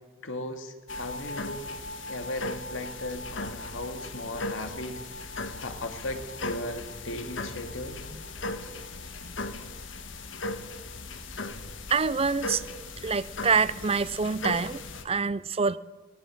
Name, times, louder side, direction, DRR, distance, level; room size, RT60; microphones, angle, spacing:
voice 1, 0.2-1.6 2.1-5.3 5.6-8.0, left 1 dB, 85° left, 6 dB, 2.3 m, -37 dB
sound 1, 0.9-15.0, left 2 dB, 70° left, 1.6 m, -37 dB
voice 2, 11.9-12.6 13.0-15.8, right 5 dB, 30° right, 17 dB, 0.6 m, -26 dB
18.5 x 17.5 x 9.2 m, 1.3 s
head